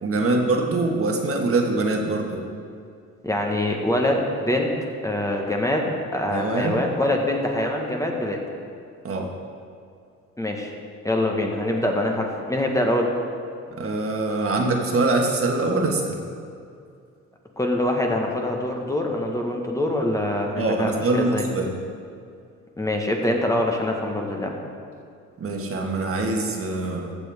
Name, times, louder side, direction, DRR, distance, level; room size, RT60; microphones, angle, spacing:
voice 1, 0.0-2.4 6.3-6.8 9.0-9.3 13.7-16.2 20.6-21.7 25.4-27.2, right 2 dB, 45° right, 1 dB, 1.4 m, -24 dB
voice 2, 3.2-4.8 5.0-8.4 10.4-10.7 11.0-13.1 17.6-21.4 22.8-24.5, left 1 dB, 10° left, 1 dB, 1.2 m, -24 dB
14.5 x 7.0 x 3.5 m, 2.4 s
cardioid pair, 90°, 30 cm